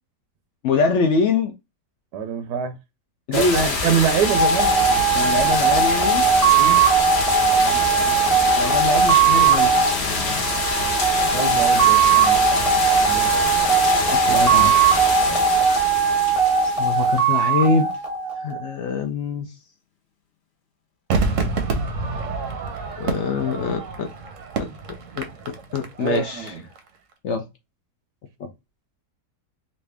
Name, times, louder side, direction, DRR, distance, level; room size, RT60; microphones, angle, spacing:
voice 1, 0.6-1.5 3.3-3.7 5.1-6.3 7.6-10.5 14.3-14.7 16.8-17.9 18.4-19.5 23.0-24.1 24.6-24.7 25.2-26.5 27.2-27.5 28.4-28.5, left 4 dB, 75° left, 0.6 m, -24 dB
voice 2, 2.1-2.7 3.3-4.8 6.6-6.8 11.2-12.8 13.0-13.3 15.3-15.5 26.0-26.6, right 7 dB, 85° right, 1.2 m, -25 dB
sound 1, 3.3-17.6, left 3 dB, 50° left, 1.0 m, -25 dB
sound 2, 4.2-18.7, right 6 dB, 30° right, 0.7 m, -19 dB
Crowd / Fireworks, 21.1-26.5 26.8-26.9, right 4 dB, 60° right, 0.9 m, -27 dB
3.2 x 2.6 x 3.2 m
omnidirectional pair, 1.8 m